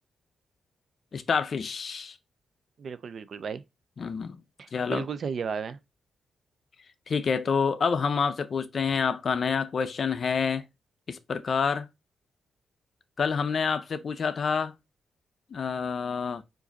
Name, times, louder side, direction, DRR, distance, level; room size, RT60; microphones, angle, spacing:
voice 1, 1.1-2.2 4.0-4.4 4.7-5.1 7.1-10.6 11.1-11.9 13.2-14.7 15.5-16.4, left 5 dB, 50° left, 0.5 m, -28 dB
voice 2, 2.8-3.6 4.6-5.8, right 6 dB, 55° right, 0.4 m, -34 dB
4.9 x 2.6 x 3.9 m
cardioid pair, 110°, 0 cm